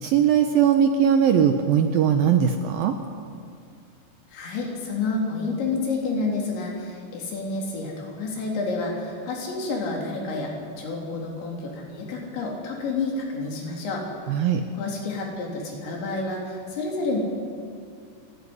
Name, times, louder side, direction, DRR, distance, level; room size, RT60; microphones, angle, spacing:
voice 1, 0.0-3.0 14.3-14.6, right 8 dB, 75° right, 6 dB, 2.2 m, -20 dB
voice 2, 4.3-14.0 14.7-17.2, left 3 dB, 80° left, -1 dB, 5.9 m, -29 dB
28.0 x 12.5 x 9.7 m, 2.2 s
omnidirectional pair, 5.1 m